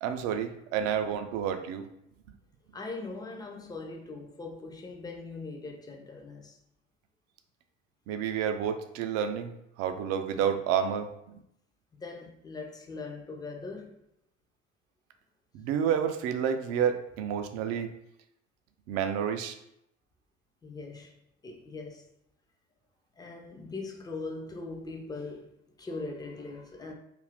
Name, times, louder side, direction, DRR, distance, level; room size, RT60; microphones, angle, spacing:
voice 1, 0.0-1.9 8.1-9.5 9.8-11.4 15.5-17.9 18.9-19.5, right 8 dB, 45° right, 0.4 m, -29 dB
voice 2, 2.7-6.6 11.9-14.0 20.6-21.2 21.4-22.1 23.2-26.9, left 3 dB, 10° left, 0.5 m, -41 dB
2.6 x 2.5 x 3.3 m
figure-of-eight pair, 60°, 37 cm